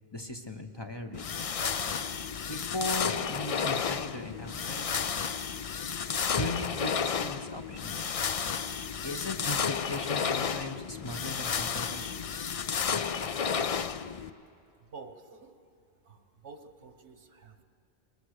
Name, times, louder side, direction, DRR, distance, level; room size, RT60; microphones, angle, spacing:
voice 1, 0.1-1.3 2.4-5.3 6.3-8.2 9.0-12.3, left 1 dB, 25° left, 5 dB, 0.9 m, -38 dB
sound 1, 1.1-14.3, left 6 dB, 45° left, 0.5 m, -32 dB
voice 2, 14.9-15.5 16.1-17.6, right 4 dB, 90° right, 7 dB, 1.6 m, -48 dB
22.0 x 20.0 x 6.5 m, 2.4 s
omnidirectional pair, 1.1 m